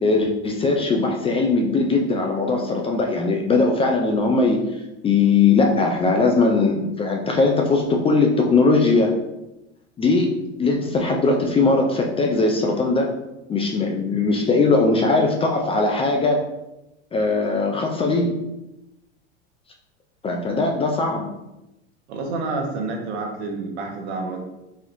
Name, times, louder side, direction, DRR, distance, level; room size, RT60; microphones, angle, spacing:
voice 1, 0.0-4.6 5.0-9.2 10.0-13.1 13.5-16.5 17.1-18.4 20.2-21.3, left 3 dB, 15° left, 1 dB, 0.3 m, -20 dB
voice 2, 22.1-24.4, right 3 dB, 75° right, 2 dB, 0.9 m, -28 dB
4.1 x 2.8 x 2.6 m, 0.94 s
hypercardioid pair, 100°, 34 cm